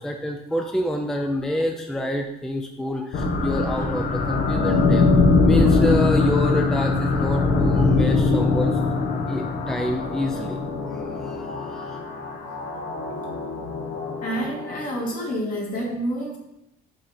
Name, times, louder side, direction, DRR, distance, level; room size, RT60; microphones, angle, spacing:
voice 1, 0.0-5.1 5.4-12.0, left 1 dB, 5° left, 3 dB, 0.5 m, -28 dB
sound 1, 3.1-15.1, left 3 dB, 75° left, 1.1 m, -22 dB
voice 2, 14.2-16.4, equal, 50° left, -2 dB, 2.2 m, -28 dB
6.3 x 4.2 x 4.3 m, 0.85 s
cardioid pair, 110°, 17 cm